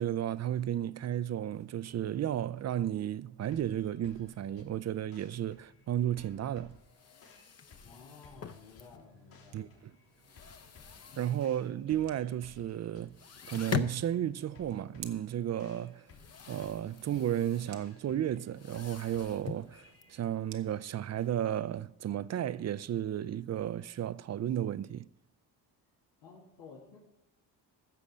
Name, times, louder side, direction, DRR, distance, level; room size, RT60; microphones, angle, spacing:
voice 1, 0.0-6.8 9.5-9.9 11.2-13.2 13.5-16.0 16.5-19.8 20.1-25.1, right 11 dB, 35° right, 0.4 m, -33 dB
sound 1, 3.5-20.2, left 4 dB, 65° left, 3.6 m, -59 dB
sound 2, 6.8-9.4 9.7-11.8 12.1-12.2 12.6-12.7 13.0-21.3, left 8 dB, 35° left, 0.7 m, -43 dB
voice 2, 7.8-9.8 26.2-27.0, left 4 dB, 90° left, 2.4 m, -53 dB
sound 3, 9.0-21.4, right 10 dB, 90° right, 0.9 m, -58 dB
15.5 x 6.5 x 5.0 m
supercardioid pair, 65°, 48 cm